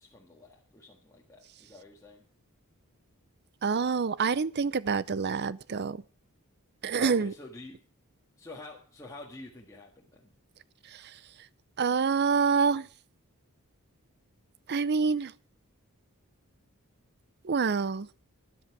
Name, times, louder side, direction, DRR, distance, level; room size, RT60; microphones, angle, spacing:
voice 1, 0.0-2.2 6.9-7.8 8.4-10.3, left 1 dB, 15° left, 1.6 m, -47 dB
voice 2, 3.6-6.0 6.8-7.3 11.8-12.9 14.7-15.3 17.4-18.1, right 5 dB, 50° right, 0.5 m, -26 dB
13.0 x 11.0 x 4.8 m
head